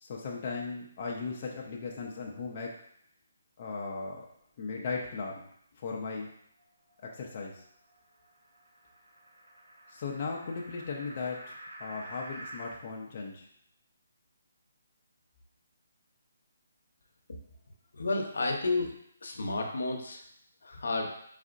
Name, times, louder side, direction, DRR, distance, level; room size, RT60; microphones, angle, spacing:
voice 1, 0.0-2.7 3.6-4.3 4.6-5.4 5.8-6.3 7.0-7.6 9.9-13.5, left 4 dB, 30° left, -2 dB, 0.5 m, -37 dB
sound 1, 6.3-12.8, right 1 dB, 90° right, 1.2 m, -49 dB
voice 2, 17.9-18.9 19.2-20.2 20.6-21.1, left 2 dB, 75° left, 3 dB, 0.7 m, -31 dB
4.1 x 3.6 x 2.5 m, 0.70 s
hypercardioid pair, 175°, 0 cm